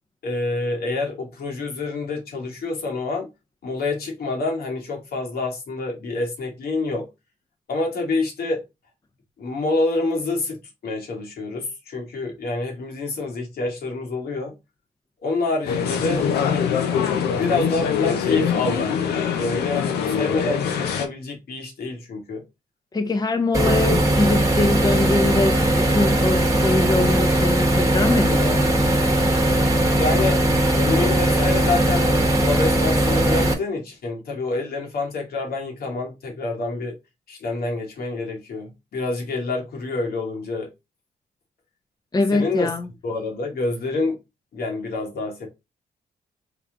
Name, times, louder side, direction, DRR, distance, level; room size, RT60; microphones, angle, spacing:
voice 1, 0.2-3.3 3.6-7.1 7.7-8.6 9.4-14.5 15.2-16.6 17.0-22.4 29.9-30.5 30.7-36.9 37.3-40.7 42.3-42.7 43.0-44.2 44.5-45.5, left 3 dB, 70° left, 1.4 m, -27 dB
sound 1, 15.7-21.1, left 7 dB, 85° left, 0.6 m, -23 dB
voice 2, 22.9-28.7 42.1-42.9, left 2 dB, 25° left, 0.7 m, -23 dB
sound 2, 23.5-33.5, right 1 dB, 20° right, 1.2 m, -19 dB
3.6 x 2.3 x 3.6 m
supercardioid pair, 60°, 17 cm